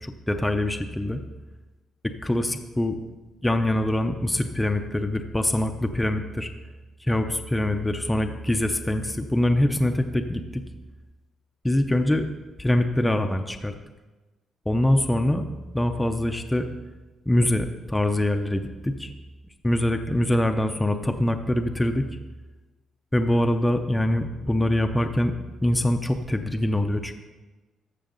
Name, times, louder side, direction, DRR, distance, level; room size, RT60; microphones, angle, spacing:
voice 1, 0.0-1.2 2.0-3.0 3.4-6.5 7.0-10.6 11.6-12.2 12.6-13.7 14.7-15.4 15.7-16.7 17.3-19.1 19.6-22.0 23.1-27.1, left 1 dB, 5° left, 6 dB, 0.5 m, -24 dB
14.0 x 6.3 x 3.8 m, 1.2 s
cardioid pair, 170°, 0 cm